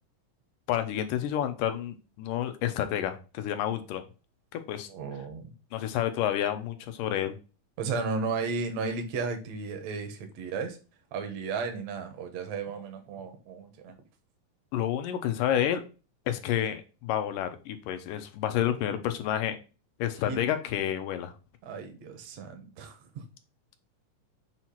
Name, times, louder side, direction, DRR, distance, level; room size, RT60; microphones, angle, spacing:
voice 1, 0.7-4.0 4.5-4.9 5.7-7.4 14.7-15.8 16.3-19.6 20.0-21.3, left 11 dB, 90° left, 8 dB, 2.4 m, -29 dB
voice 2, 4.9-5.5 7.8-10.8 11.1-13.9 20.3-20.5 21.6-23.2, right 4 dB, 65° right, 5 dB, 2.1 m, -34 dB
6.6 x 3.0 x 5.7 m, 0.33 s
omnidirectional pair, 3.8 m